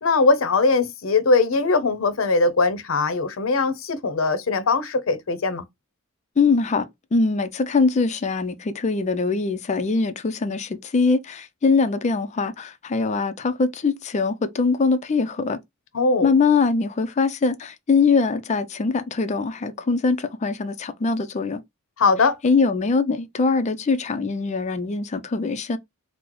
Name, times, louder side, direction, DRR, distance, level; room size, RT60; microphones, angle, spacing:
voice 1, 0.0-5.6 15.9-16.3 22.0-22.4, left 3 dB, 75° left, 0.6 m, -20 dB
voice 2, 6.4-15.6 16.2-21.6 22.4-25.8, left 4 dB, 35° left, 0.4 m, -22 dB
3.0 x 2.0 x 3.7 m
head